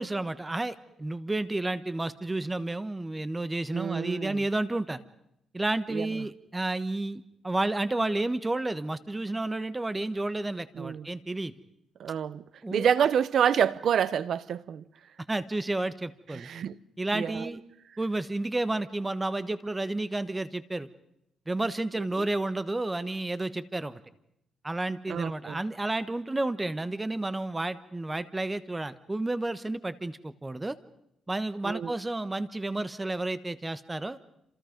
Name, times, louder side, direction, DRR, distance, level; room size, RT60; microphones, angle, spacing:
voice 1, 0.0-5.0 5.5-11.5 12.6-12.9 15.3-16.5 17.0-17.6 18.0-20.9 21.5-24.0 24.6-30.8 31.3-34.2, right 2 dB, 15° right, 1.2 m, -31 dB
voice 2, 3.7-4.4 5.9-6.3 10.7-11.1 12.0-12.4 12.7-14.8 16.3-16.8 17.1-17.5 22.0-22.1 25.1-25.6 31.6-31.9, right 8 dB, 60° right, 0.9 m, -28 dB
28.5 x 27.0 x 5.3 m
cardioid pair, 130°, 0 cm